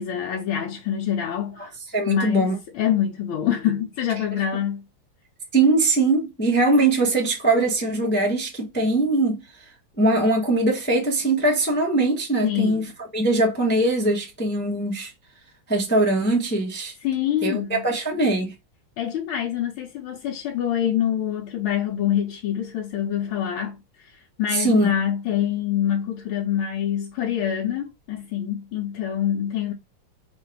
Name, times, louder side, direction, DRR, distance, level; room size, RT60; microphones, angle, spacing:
voice 1, 0.0-1.7 2.1-4.8 12.4-12.8 17.0-17.8 19.0-24.1 24.4-29.7, left 10 dB, 80° left, 1.5 m, -25 dB
voice 2, 1.9-2.5 5.5-9.4 10.0-12.9 13.1-15.1 15.7-16.9 17.4-18.5 24.5-24.9, right 2 dB, 10° left, 0.6 m, -21 dB
3.7 x 2.6 x 4.5 m
omnidirectional pair, 2.3 m